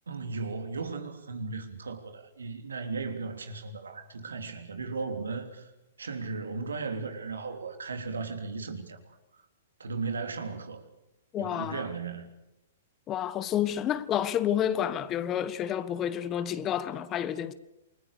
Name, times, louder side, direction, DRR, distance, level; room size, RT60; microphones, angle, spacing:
voice 1, 0.1-5.7 6.0-9.2 9.8-10.8 11.4-12.3, right 4 dB, 85° right, 3.2 m, -36 dB
voice 2, 11.3-11.8 13.1-17.5, left 10 dB, 25° left, 1.4 m, -29 dB
28.5 x 21.0 x 6.8 m
hypercardioid pair, 120°, 0 cm